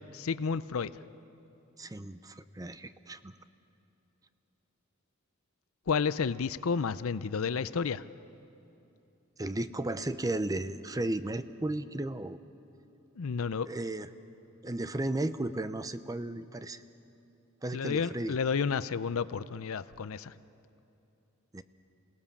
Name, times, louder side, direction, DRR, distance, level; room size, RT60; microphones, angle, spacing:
voice 1, 0.1-0.9 5.9-8.0 13.2-13.7 17.7-20.3, left 5 dB, 70° left, 16 dB, 0.5 m, -31 dB
voice 2, 1.8-3.4 9.4-12.4 13.7-14.1 14.6-16.8 17.6-18.4 21.5-21.6, right 2 dB, 15° right, 13 dB, 0.6 m, -34 dB
27.5 x 18.0 x 7.2 m, 2.8 s
head